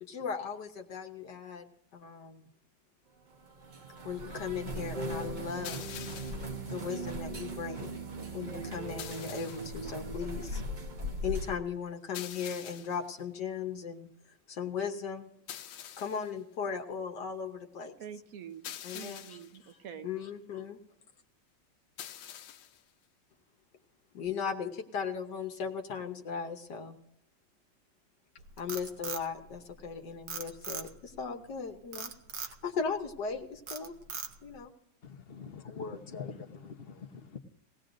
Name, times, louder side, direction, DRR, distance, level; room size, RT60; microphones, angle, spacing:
voice 1, 0.0-1.6 1.9-2.5 4.0-5.9 6.7-7.9 8.3-10.6 11.2-14.1 14.5-15.3 16.0-17.9 18.8-19.4 20.0-20.8 24.1-27.0 28.6-34.0 34.4-34.7, left 6 dB, 70° left, 3 dB, 1.6 m, -37 dB
sound 1, 3.3-11.6, right 1 dB, 35° right, 0.9 m, -39 dB
sound 2, 5.6-6.6 9.0-9.8 12.1-13.1 15.5-16.3 18.6-19.6 22.0-22.8, left 10 dB, 85° left, 1.4 m, -45 dB
voice 2, 18.0-20.1, right 8 dB, 55° right, 9 dB, 1.2 m, -46 dB
Frog, 28.4-29.9 30.3-31.2 31.9-32.6 33.1-33.3 33.7-34.6, right 6 dB, 75° right, 1.7 m, -40 dB
voice 3, 35.0-37.4, left 5 dB, 40° left, 6 dB, 1.0 m, -43 dB
20.0 x 16.5 x 2.6 m, 0.78 s
omnidirectional pair, 1.9 m